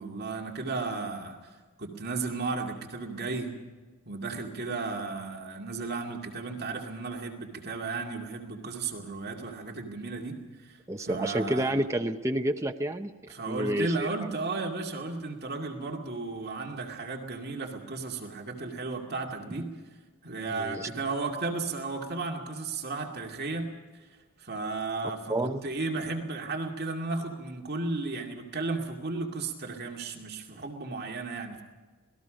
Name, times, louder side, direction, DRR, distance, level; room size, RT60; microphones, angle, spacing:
voice 1, 0.0-3.5 4.1-11.7 13.3-19.6 20.2-23.7 24.0-24.1 24.4-31.6, right 3 dB, 45° right, 0 dB, 2.4 m, -34 dB
voice 2, 10.9-13.1 13.5-14.1 20.5-20.9 25.3-25.6, right 1 dB, 15° right, 5 dB, 0.7 m, -29 dB
27.0 x 19.5 x 5.2 m, 1.3 s
head